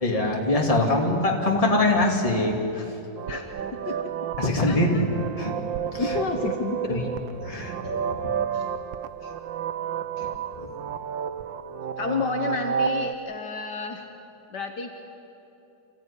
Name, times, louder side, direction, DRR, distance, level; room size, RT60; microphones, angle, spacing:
voice 1, 0.0-2.8 4.4-5.1 5.4-5.5 5.9-6.0 6.9-7.0 7.5-7.7 10.2-10.3 10.6-10.7, left 2 dB, 20° left, 0 dB, 2.6 m, -23 dB
sound 1, 3.2-13.1, right 7 dB, 80° right, 1.6 m, -31 dB
voice 2, 3.3-4.1 4.7-5.0 6.0-7.1 7.8-8.0 8.5-8.7 9.2-9.3 10.2-10.3 12.0-14.1 14.5-14.9, left 4 dB, 65° left, 4 dB, 1.8 m, -31 dB
28.0 x 15.5 x 10.0 m, 3.0 s
omnidirectional pair, 2.0 m